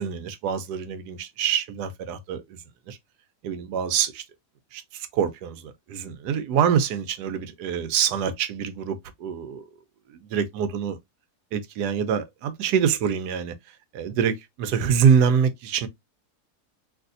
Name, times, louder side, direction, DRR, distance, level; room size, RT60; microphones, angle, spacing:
voice 1, 0.0-2.6 2.9-3.0 3.4-4.2 4.7-9.6 10.1-11.0 11.5-13.6 13.9-15.9, right 7 dB, 90° right, 1.2 m, -25 dB
3.4 x 2.6 x 2.5 m
omnidirectional pair, 1.7 m